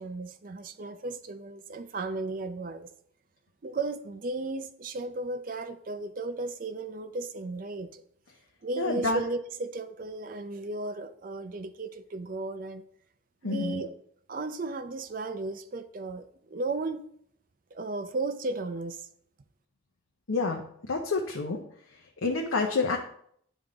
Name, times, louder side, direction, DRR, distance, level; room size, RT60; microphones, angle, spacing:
voice 1, 0.0-2.9 3.6-8.0 8.6-12.8 13.4-13.9 14.3-17.0 17.7-19.1, right 3 dB, 45° right, 10 dB, 0.5 m, -35 dB
voice 2, 8.8-9.2 13.4-13.8 20.3-20.6 20.9-21.6 22.2-23.0, left 3 dB, 85° left, 1 dB, 0.7 m, -28 dB
10.0 x 3.5 x 3.8 m, 0.66 s
head